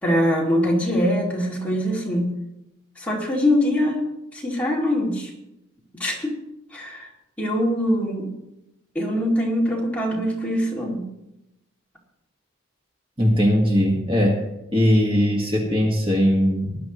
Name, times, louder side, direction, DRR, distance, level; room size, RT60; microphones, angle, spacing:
voice 1, 0.0-2.3 3.0-4.0 4.3-5.3 6.0-6.4 6.7-7.1 7.4-8.3 8.9-11.1, equal, 5° left, -4 dB, 2.5 m, -23 dB
voice 2, 13.2-14.4 14.7-16.8, equal, 25° right, -1 dB, 1.9 m, -19 dB
19.5 x 11.0 x 3.1 m, 0.90 s
head